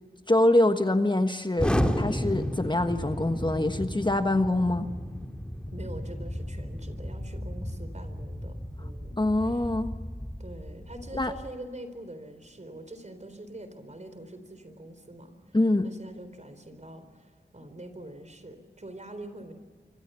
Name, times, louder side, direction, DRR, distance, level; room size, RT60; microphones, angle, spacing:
voice 1, 0.3-4.9 9.2-9.9 11.1-11.3 15.5-15.9, left 1 dB, 25° left, 7 dB, 1.4 m, -24 dB
Explosion, 1.6-11.5, equal, 5° left, 2.5 m, -33 dB
voice 2, 5.7-9.7 10.4-15.3 15.8-19.5, right 1 dB, 40° right, 9 dB, 4.2 m, -44 dB
25.5 x 25.0 x 7.0 m, 1.5 s
wide cardioid pair, 50°, 18 cm